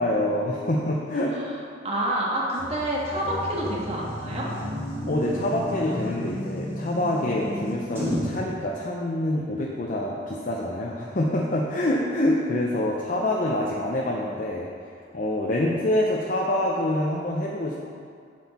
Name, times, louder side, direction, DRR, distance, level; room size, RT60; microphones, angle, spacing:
voice 1, 0.0-1.7 5.0-14.7 15.1-17.9, left 1 dB, 45° left, -3 dB, 0.7 m, -26 dB
voice 2, 1.8-4.5, right 1 dB, 35° right, -4 dB, 1.5 m, -27 dB
sound 1, 2.6-8.4, left 1 dB, 15° right, 1.4 m, -32 dB
7.8 x 6.4 x 4.2 m, 2.3 s
head